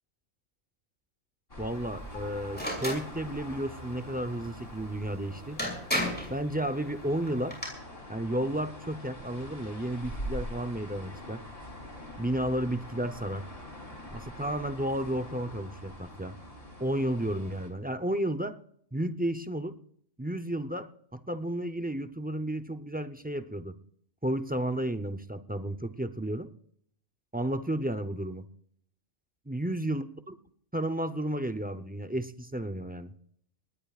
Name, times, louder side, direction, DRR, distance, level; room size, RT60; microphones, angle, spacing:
sound 1, 1.5-17.7, equal, 45° left, 3.9 m, -44 dB
voice 1, 1.6-5.6 6.3-7.6 8.1-11.4 12.2-13.4 14.1-16.4 16.8-18.6 18.9-19.7 20.2-23.7 24.2-26.5 27.3-28.4 29.5-30.4 30.7-33.1, right 1 dB, 15° right, 8 dB, 0.3 m, -32 dB
sound 2, 2.5-3.0 5.1-5.2 5.6-6.3 7.3-7.7, equal, 5° left, 6.2 m, -31 dB
24.0 x 19.5 x 2.4 m, 0.65 s
omnidirectional pair, 1.4 m